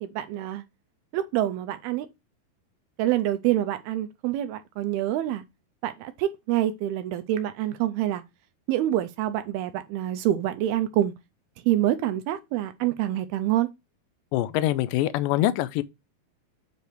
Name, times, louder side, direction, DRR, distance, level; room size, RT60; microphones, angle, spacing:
voice 1, 0.0-0.6 1.1-2.1 3.0-5.4 5.8-8.2 8.7-11.1 11.7-13.7, right 13 dB, 80° right, 2.5 m, -26 dB
voice 2, 14.3-15.8, left 14 dB, 90° left, 2.0 m, -24 dB
8.1 x 3.3 x 5.9 m
omnidirectional pair, 4.6 m